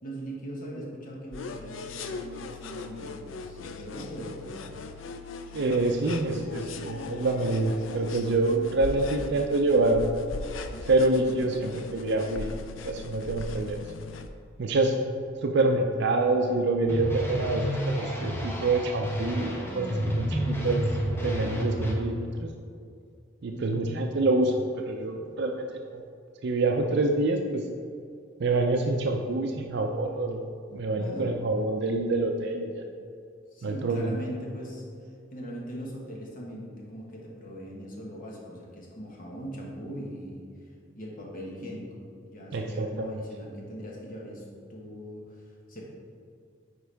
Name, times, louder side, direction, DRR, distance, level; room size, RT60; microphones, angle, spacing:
voice 1, 0.0-4.7 11.4-11.7 23.5-24.0 30.9-31.3 33.5-34.8 35.3-40.4 40.9-41.9 42.2-45.8, equal, 45° left, -3 dB, 1.4 m, -40 dB
sound 1, 1.3-14.3, left 3 dB, 85° left, 0.5 m, -39 dB
voice 2, 5.5-10.4 10.9-12.6 12.8-13.8 14.6-15.0 15.4-20.8 21.2-22.5 23.4-24.5 24.9-25.7 25.9-26.0 26.4-27.6 28.4-30.4 30.7-32.8 33.6-34.2 42.5-43.2, right 2 dB, 60° right, 3 dB, 0.5 m, -26 dB
sound 2, 16.9-21.9, equal, 15° left, 0.9 m, -30 dB
9.4 x 4.6 x 3.4 m, 2.3 s
head